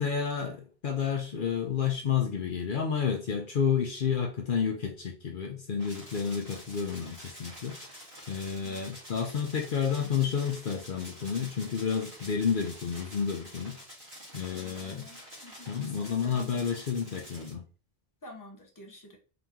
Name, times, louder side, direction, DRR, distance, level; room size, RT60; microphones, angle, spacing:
voice 1, 0.0-7.8 8.3-13.8 14.3-15.0 15.7-17.6, left 7 dB, 60° left, 3 dB, 0.8 m, -30 dB
sound 1, 5.8-17.5, equal, 60° right, 1.9 m, -48 dB
voice 2, 14.5-16.8 17.4-17.5 18.2-19.2, left 2 dB, 20° left, 2 dB, 0.8 m, -50 dB
3.9 x 2.9 x 3.6 m, 0.36 s
omnidirectional pair, 1.0 m